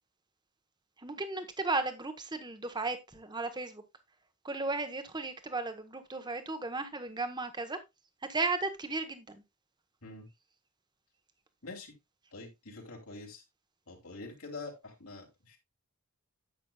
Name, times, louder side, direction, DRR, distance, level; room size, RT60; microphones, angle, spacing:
voice 1, 1.0-3.8 4.4-7.8 8.3-9.4, right 3 dB, 20° right, 1.1 m, -35 dB
voice 2, 11.6-11.9 12.3-13.4 13.9-15.6, left 3 dB, 75° left, 3.1 m, -45 dB
10.5 x 8.2 x 2.3 m
head